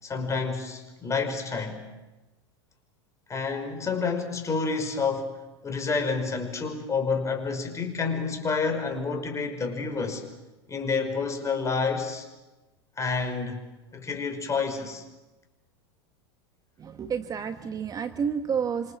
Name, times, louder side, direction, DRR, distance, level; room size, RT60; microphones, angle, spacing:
voice 1, 0.0-1.9 3.3-10.2 10.7-12.3 13.0-13.6 13.9-15.0, left 4 dB, 20° left, 5.6 m, -29 dB
voice 2, 16.8-19.0, right 7 dB, 25° right, 1.5 m, -30 dB
27.0 x 26.5 x 7.4 m
hypercardioid pair, 105°, 14 cm